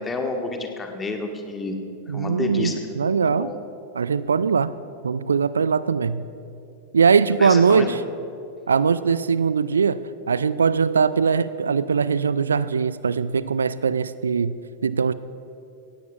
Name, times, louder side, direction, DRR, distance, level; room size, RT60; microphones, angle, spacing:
voice 1, 0.0-1.7 2.1-3.5 7.4-7.9, left 3 dB, 15° left, 3 dB, 1.5 m, -30 dB
voice 2, 2.1-3.5 3.9-4.7 5.0-6.3 6.9-8.0 8.7-14.6 14.8-15.1, right 6 dB, 75° right, 17 dB, 0.3 m, -21 dB
17.0 x 16.5 x 2.5 m, 2.6 s
figure-of-eight pair, 90°, 0 cm